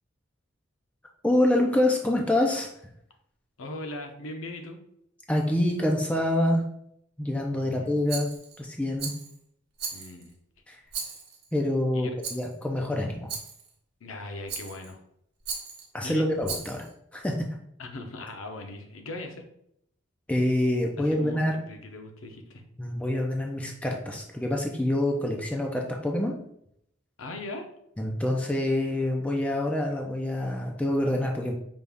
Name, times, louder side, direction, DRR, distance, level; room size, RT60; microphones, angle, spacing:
voice 1, 1.2-2.7 5.3-6.6 7.2-8.3 8.6-9.1 10.7-10.8 11.5-13.3 15.9-16.9 17.1-17.3 20.3-21.6 22.8-26.4 28.0-31.5, left 1 dB, 5° left, 0 dB, 0.4 m, -26 dB
voice 2, 3.6-4.8 7.5-8.0 9.9-10.3 11.9-12.1 14.0-15.0 16.0-16.3 17.8-19.4 21.0-22.6 27.2-27.7, left 2 dB, 90° left, 4 dB, 0.7 m, -39 dB
Rattle, 8.1-8.6 9.0-9.4 9.8-10.3 10.9-11.5 12.2-12.5 13.3-13.7 14.5-14.9 15.4-15.9 16.4-16.9, right 5 dB, 50° right, 1.0 m, -36 dB
5.3 x 2.4 x 3.4 m, 0.73 s
head